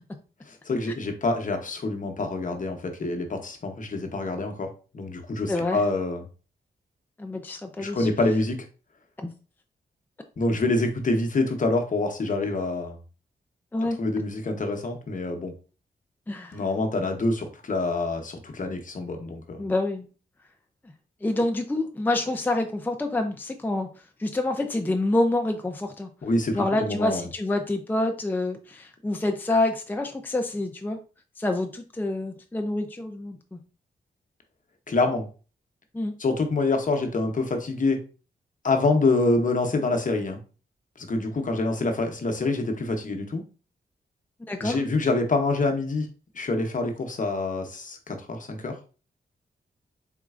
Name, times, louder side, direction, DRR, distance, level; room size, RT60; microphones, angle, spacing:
voice 1, 0.5-6.3 7.8-8.7 10.4-13.0 14.0-15.5 16.5-19.6 26.2-27.3 34.9-35.3 36.2-38.0 38.6-40.4 41.0-43.4 44.6-46.1 46.3-48.8, left 2 dB, 50° left, 4 dB, 0.9 m, -26 dB
voice 2, 5.5-5.8 7.2-8.1 9.2-9.3 13.7-14.0 16.3-16.6 19.6-20.1 21.2-23.9 24.2-26.1 26.5-31.0 31.4-33.6 35.9-36.1 44.5-44.8, left 2 dB, 10° left, 5 dB, 0.5 m, -27 dB
4.1 x 3.7 x 2.4 m, 0.35 s
cardioid pair, 85°, 17 cm